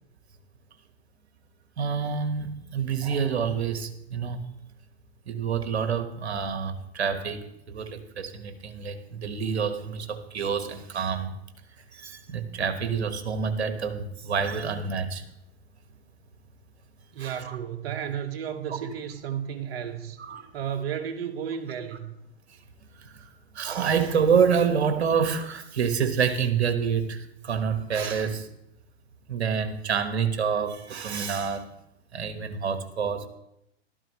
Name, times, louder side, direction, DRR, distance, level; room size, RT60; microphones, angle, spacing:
voice 1, 1.8-4.4 5.3-11.3 11.9-15.2 17.2-17.6 20.2-20.5 23.0-23.3 23.5-28.5 29.3-31.7 32.1-33.3, right 6 dB, 80° right, 8 dB, 1.5 m, -27 dB
voice 2, 17.1-20.2 20.5-22.1, right 8 dB, 60° right, 6 dB, 1.6 m, -33 dB
13.5 x 12.5 x 3.1 m, 0.83 s
hypercardioid pair, 110°, 33 cm